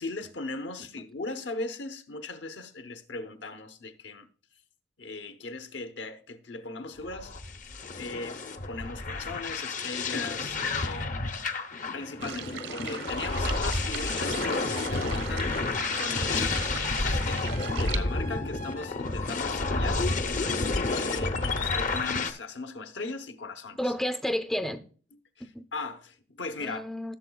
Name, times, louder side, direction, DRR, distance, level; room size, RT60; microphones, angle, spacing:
voice 1, 0.0-4.3 5.0-7.4 8.0-11.2 11.9-15.7 16.0-20.0 20.9-23.9 25.7-26.8, left 3 dB, 75° left, 0.9 m, -38 dB
sound 1, 7.0-22.3, left 3 dB, 45° left, 0.7 m, -30 dB
sound 2, 12.2-18.0, right 7 dB, 80° right, 0.9 m, -39 dB
voice 2, 23.8-24.8 25.4-25.7 26.6-27.1, equal, ahead, 0.5 m, -31 dB
15.5 x 7.0 x 2.3 m
head